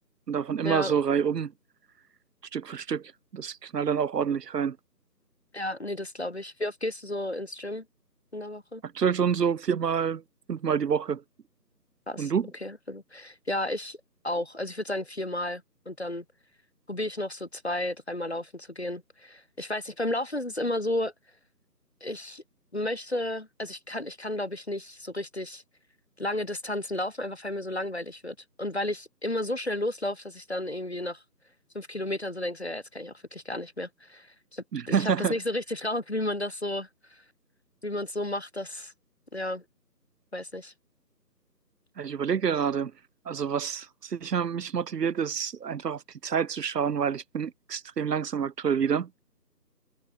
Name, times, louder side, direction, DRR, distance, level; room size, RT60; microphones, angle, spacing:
voice 1, 0.3-1.5 2.5-4.8 8.8-10.2 10.5-11.2 12.2-12.5 34.7-35.3 42.0-42.9 43.3-49.2, right 7 dB, 70° right, 0.6 m, -28 dB
voice 2, 5.5-7.8 8.3-8.8 12.1-12.3 12.6-14.0 14.2-16.2 16.9-21.1 22.0-22.4 22.7-25.6 26.2-31.2 31.7-37.2 37.8-38.9 39.3-39.6 40.3-40.7, left 1 dB, 40° left, 0.7 m, -33 dB
figure-of-eight pair, 165°, 50 cm